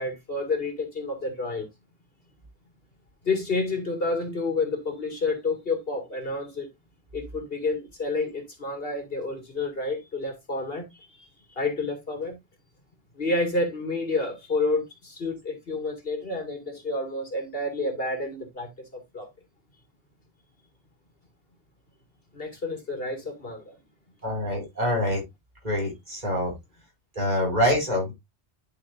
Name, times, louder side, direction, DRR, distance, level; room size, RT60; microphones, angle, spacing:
voice 1, 0.0-1.7 3.2-6.7 7.1-12.4 13.2-19.3 22.3-23.8, left 3 dB, 60° left, 2.3 m, -29 dB
voice 2, 24.2-25.2 25.6-26.5 27.2-28.1, equal, 40° right, 5.6 m, -25 dB
11.5 x 5.8 x 2.5 m
omnidirectional pair, 1.1 m